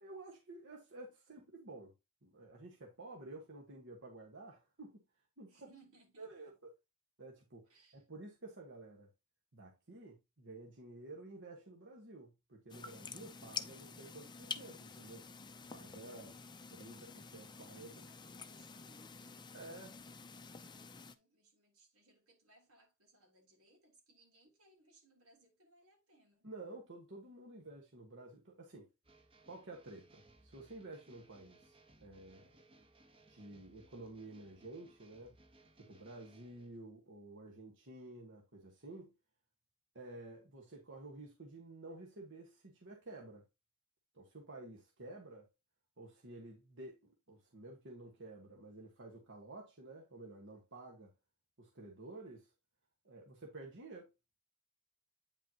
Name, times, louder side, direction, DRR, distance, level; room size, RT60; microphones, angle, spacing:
voice 1, 0.0-1.9 2.2-5.0 5.4-5.7 6.2-6.7 7.2-9.1 9.5-15.3 15.7-16.4 16.7-17.9 19.5-20.0 26.4-28.9 29.4-32.5 33.3-35.3 35.8-39.1 39.9-43.4 44.1-45.5 46.0-47.0 47.3-51.1 51.6-52.5 53.0-54.1, right 2 dB, 60° right, 1.5 m, -52 dB
voice 2, 5.5-6.5 7.7-8.0 17.6-19.7 20.4-26.5, right 2 dB, 85° right, 3.4 m, -68 dB
sound 1, 12.7-21.1, left 5 dB, 20° left, 0.6 m, -49 dB
sound 2, 29.0-36.8, right 2 dB, 25° right, 1.0 m, -65 dB
9.1 x 5.4 x 2.9 m
head